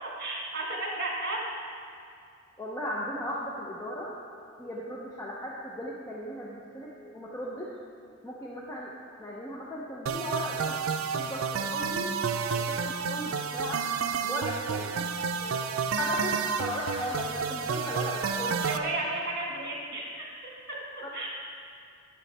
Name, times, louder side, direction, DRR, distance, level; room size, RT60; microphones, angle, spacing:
voice 1, 0.0-1.7 11.8-12.0 14.8-15.0 18.6-20.5 21.1-21.3, right 2 dB, 50° right, -2 dB, 1.6 m, -34 dB
voice 2, 2.6-4.2 4.5-7.8 8.2-8.9 9.2-10.8 11.1-12.2 12.5-13.9 14.2-14.9 15.4-15.6 15.9-18.6, equal, 15° left, -4 dB, 0.6 m, -36 dB
sound 1, 10.1-18.8, right 6 dB, 75° right, 0.4 m, -30 dB
11.0 x 7.5 x 3.4 m, 2.4 s
head